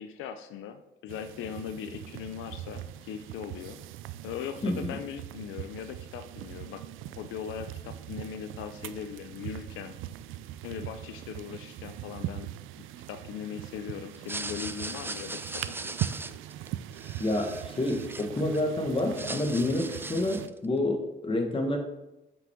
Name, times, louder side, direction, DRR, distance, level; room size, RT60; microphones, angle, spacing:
voice 1, 0.0-3.8 4.2-6.8 7.1-10.0 10.6-12.5 12.8-16.0, left 8 dB, 85° left, 8 dB, 0.5 m, -39 dB
sound 1, 1.1-20.5, right 12 dB, 85° right, 0.4 m, -41 dB
voice 2, 4.6-4.9 17.2-21.8, left 1 dB, 25° left, 3 dB, 1.5 m, -28 dB
sound 2, 14.1-18.6 19.0-20.6, right 2 dB, 10° right, 0.4 m, -39 dB
7.7 x 6.0 x 3.6 m, 0.96 s
cardioid pair, 90°, 20 cm